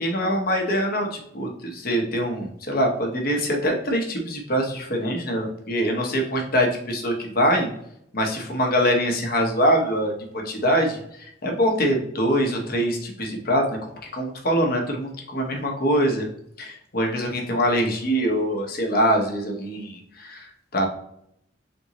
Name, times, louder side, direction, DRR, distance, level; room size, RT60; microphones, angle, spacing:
voice 1, 0.0-7.7 8.1-11.0 11.4-13.8 14.1-16.3 16.6-20.5 20.7-20.9, equal, 55° left, 2 dB, 1.0 m, -23 dB
4.0 x 3.5 x 2.9 m, 0.72 s
head